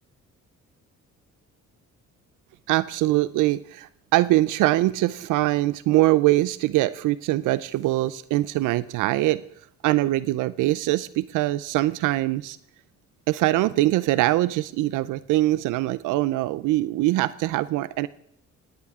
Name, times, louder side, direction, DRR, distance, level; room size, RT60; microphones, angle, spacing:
voice 1, 2.7-9.4 9.8-12.6 13.3-18.1, right 17 dB, 90° right, 17 dB, 0.5 m, -23 dB
19.0 x 17.5 x 3.6 m, 0.70 s
cardioid pair, 90°, 30 cm